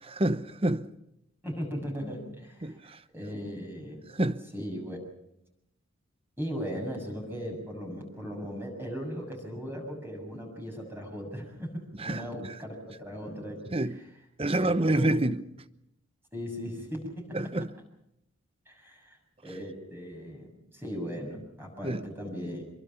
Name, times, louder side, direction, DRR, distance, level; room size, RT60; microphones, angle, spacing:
voice 1, 0.0-0.9 2.6-3.0 4.1-4.4 12.0-12.6 13.7-14.0 14.4-15.4 17.3-17.7 21.8-22.1, right 1 dB, 25° right, 0.9 m, -28 dB
voice 2, 1.4-4.0 4.5-5.0 6.4-13.7 13.9-14.0 14.5-15.2 16.3-17.4 18.7-19.2 19.4-22.6, equal, 10° right, 6.5 m, -38 dB
26.5 x 23.0 x 5.8 m
head